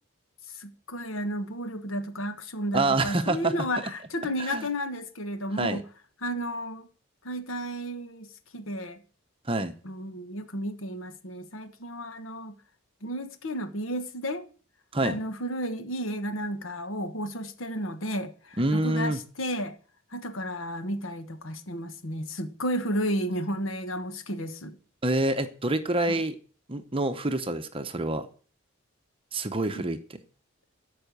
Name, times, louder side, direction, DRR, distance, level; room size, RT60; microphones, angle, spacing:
voice 1, 0.6-5.8 6.2-6.9 7.2-9.0 9.8-12.6 13.0-14.4 15.0-19.7 20.1-24.8 26.1-26.2 29.8-29.9, equal, 65° left, 1.4 m, -33 dB
voice 2, 2.7-3.5 4.4-4.7 5.6-5.8 9.5-9.7 14.9-15.2 18.6-19.2 25.0-26.4 26.7-28.3 29.3-30.2, right 2 dB, 25° right, 0.8 m, -27 dB
14.0 x 5.6 x 6.8 m
head